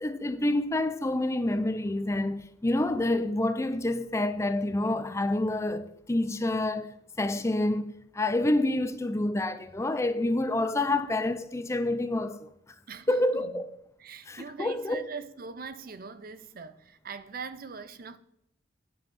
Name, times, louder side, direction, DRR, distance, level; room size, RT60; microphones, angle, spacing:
voice 1, 0.0-12.5 13.1-13.7 14.3-15.1, left 1 dB, 15° left, 0.4 m, -28 dB
voice 2, 12.9-13.7 14.0-18.2, right 5 dB, 50° right, 0.6 m, -42 dB
9.2 x 7.3 x 6.1 m
head